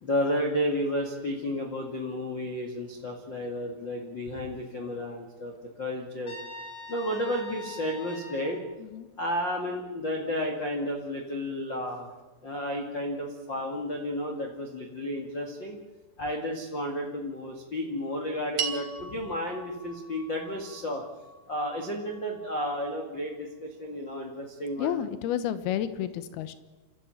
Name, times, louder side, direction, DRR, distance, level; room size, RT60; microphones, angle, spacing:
voice 1, 0.0-6.4 6.9-8.6 9.1-12.1 12.4-15.8 16.2-21.0 21.5-25.0, equal, 50° left, 1 dB, 1.4 m, -32 dB
Trumpet, 6.2-8.6, left 3 dB, 25° left, 3.4 m, -42 dB
sound 1, 18.6-23.0, right 7 dB, 45° right, 3.9 m, -39 dB
voice 2, 24.8-26.5, left 10 dB, 75° left, 12 dB, 2.3 m, -31 dB
29.0 x 14.0 x 9.0 m, 1.2 s
omnidirectional pair, 6.0 m